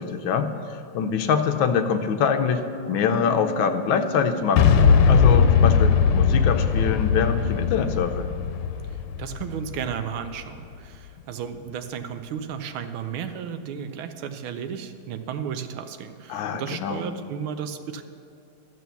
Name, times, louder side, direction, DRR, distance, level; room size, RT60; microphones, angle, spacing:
voice 1, 0.0-4.7 5.0-8.3 16.3-17.0, left 6 dB, 75° left, 7 dB, 1.4 m, -24 dB
sound 1, 2.3-8.9 9.2-9.3, equal, 10° left, 0.9 m, -41 dB
Boom, 4.6-10.4, left 6 dB, 90° left, 1.5 m, -19 dB
voice 2, 9.2-18.0, right 7 dB, 80° right, 8 dB, 1.5 m, -33 dB
12.5 x 6.1 x 6.9 m, 2.6 s
omnidirectional pair, 2.3 m